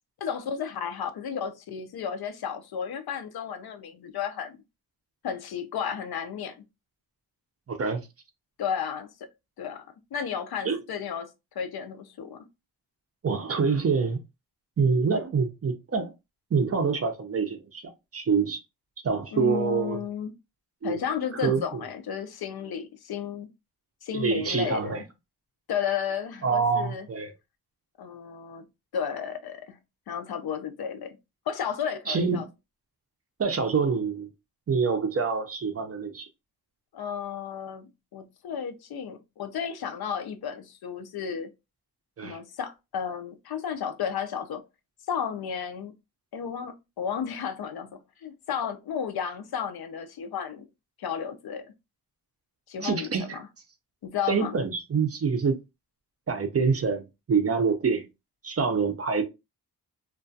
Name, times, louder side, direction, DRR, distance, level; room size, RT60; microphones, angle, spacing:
voice 1, 0.2-4.6 5.2-6.6 8.6-9.3 9.6-12.5 19.3-20.3 20.8-23.5 24.0-24.9 25.7-27.1 28.0-28.7 28.9-29.8 30.1-31.2 31.5-32.5 36.9-41.5 42.2-44.6 45.1-45.9 46.3-50.7 51.0-51.7 52.7-53.5 54.0-54.5, left 7 dB, 70° left, 0.5 m, -33 dB
voice 2, 7.7-8.0 10.7-10.8 13.2-14.2 14.8-16.1 16.5-17.8 18.1-18.6 19.0-20.0 20.8-21.0 21.4-21.8 24.1-25.0 26.4-27.3 32.1-32.4 33.4-34.3 34.7-36.3 42.2-42.4 52.8-53.4 54.3-55.6 56.3-58.0 58.4-59.2, right 5 dB, 40° right, 0.5 m, -26 dB
2.3 x 2.2 x 2.5 m
wide cardioid pair, 100°, 39 cm